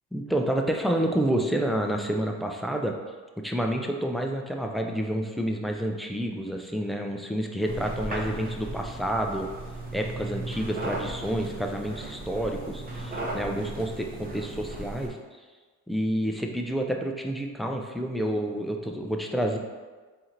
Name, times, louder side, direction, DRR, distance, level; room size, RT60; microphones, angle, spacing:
voice 1, 0.1-2.9 3.4-9.5 9.9-15.4 15.9-19.6, right 1 dB, ahead, 2 dB, 0.4 m, -29 dB
sound 1, 7.6-15.1, right 2 dB, 25° right, 0.9 m, -36 dB
3.9 x 2.7 x 4.4 m, 1.4 s
cardioid pair, 95°, 35 cm